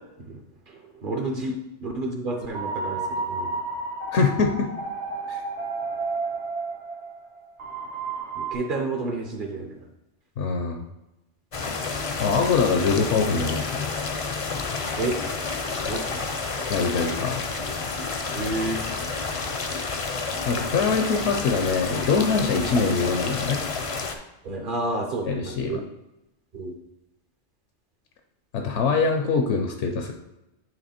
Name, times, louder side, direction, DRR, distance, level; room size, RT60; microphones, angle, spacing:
voice 1, 0.7-3.6 8.4-9.8 15.0-15.2 15.8-16.1 18.3-18.8 24.4-25.8 26.5-26.7, right 2 dB, 50° right, 2 dB, 0.9 m, -30 dB
sound 1, 2.3-8.5, right 3 dB, 75° right, 1.4 m, -31 dB
voice 2, 4.1-4.7 5.3-5.4 10.4-10.8 12.2-13.8 16.7-17.4 20.5-23.6 25.3-25.8 28.5-30.1, left 4 dB, 80° left, 4 dB, 1.0 m, -23 dB
sound 2, 11.5-24.2, left 4 dB, 40° left, 0.5 m, -30 dB
9.2 x 3.2 x 4.2 m, 0.94 s
omnidirectional pair, 1.2 m